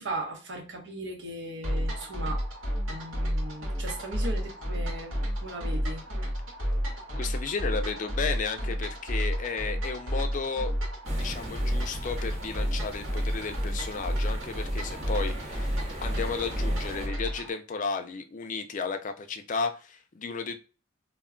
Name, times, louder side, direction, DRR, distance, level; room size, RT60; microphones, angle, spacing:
voice 1, 0.0-2.4 2.9-6.0, right 1 dB, 65° right, 1 dB, 0.9 m, -37 dB
sound 1, 1.6-17.5, equal, 85° right, 1.1 m, -31 dB
voice 2, 7.2-10.7 11.1-15.7 16.0-20.6, left 5 dB, 40° left, 7 dB, 0.4 m, -33 dB
sound 2, 11.0-17.1, right 1 dB, 35° right, 0.7 m, -40 dB
2.2 x 2.2 x 3.6 m, 0.35 s
head